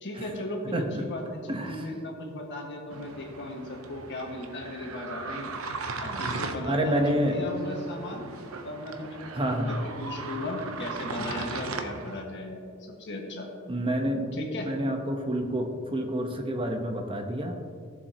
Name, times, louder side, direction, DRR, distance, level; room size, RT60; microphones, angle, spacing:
voice 1, 0.0-5.5 6.0-8.3 8.6-13.5 14.3-14.7, left 1 dB, 60° left, 0 dB, 1.7 m, -36 dB
voice 2, 0.7-1.0 1.5-1.9 6.0-6.2 6.6-7.4 9.3-9.7 11.2-11.3 13.7-14.3 14.6-17.6, right 1 dB, 25° right, 4 dB, 1.0 m, -28 dB
sound 1, 2.9-12.2, right 3 dB, 85° right, 0.8 m, -38 dB
15.0 x 7.2 x 2.9 m, 2.2 s
head